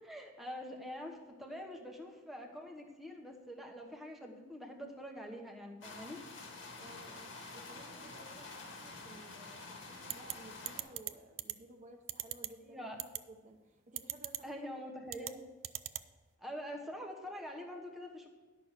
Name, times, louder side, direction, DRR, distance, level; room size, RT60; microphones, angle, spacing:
voice 1, 0.0-6.2 12.6-13.1 14.4-15.5 16.4-18.3, equal, ahead, 0 dB, 1.0 m, -45 dB
sound 1, 5.8-10.8, left 3 dB, 75° left, 1.9 m, -48 dB
voice 2, 6.7-12.8 13.3-14.6, right 1 dB, 40° right, 3 dB, 0.8 m, -56 dB
sound 2, 10.1-10.3 10.7-11.1 11.4-11.5 12.1-12.5 13.0-13.2 14.0-14.4 15.1-15.3 15.6-16.0, right 15 dB, 80° right, 0.4 m, -37 dB
11.0 x 6.0 x 6.6 m, 1.2 s
head